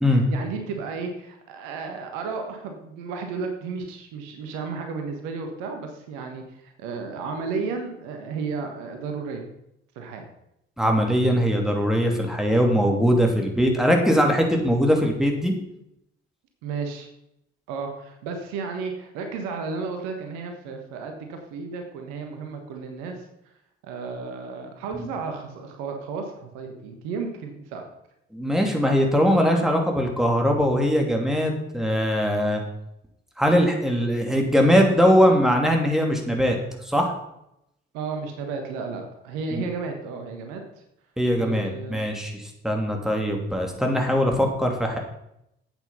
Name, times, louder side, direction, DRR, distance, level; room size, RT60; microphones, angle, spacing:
voice 1, 0.1-9.4 9.9-10.2 16.6-17.1 17.7-23.3 23.8-27.8 37.9-40.6 41.4-42.0, right 4 dB, 70° right, 4 dB, 1.5 m, -33 dB
voice 2, 10.8-15.5 28.3-32.6 33.4-36.6 36.8-37.1 39.5-39.6 41.2-45.0, equal, ahead, 2 dB, 2.7 m, -21 dB
8.8 x 8.3 x 5.6 m, 0.80 s
figure-of-eight pair, 45°, 31 cm